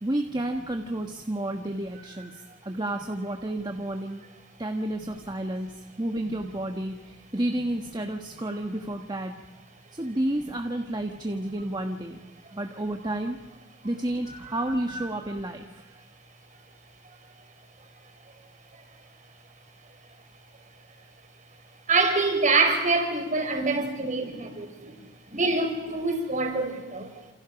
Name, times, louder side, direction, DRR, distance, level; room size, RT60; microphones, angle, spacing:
voice 1, 0.0-4.2 4.6-9.3 9.9-12.2 12.5-13.4 13.8-16.0, right 1 dB, 20° right, 1.4 m, -31 dB
voice 2, 21.9-27.1, right 3 dB, 40° right, 4.7 m, -26 dB
29.5 x 28.0 x 5.3 m
head